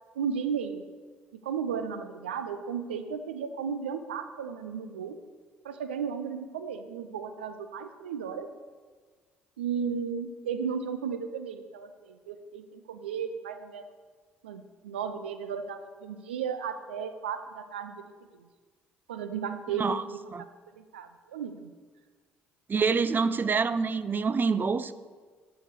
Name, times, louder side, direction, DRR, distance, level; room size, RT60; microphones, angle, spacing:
voice 1, 0.2-0.9 1.4-5.2 5.6-8.5 9.6-13.9 14.4-18.0 18.3-18.5 19.1-20.2 20.8-21.7, right 6 dB, 85° right, 0.5 m, -34 dB
voice 2, 22.7-24.9, right 5 dB, 35° right, 0.5 m, -26 dB
12.5 x 4.8 x 6.7 m
hypercardioid pair, 50°, 6 cm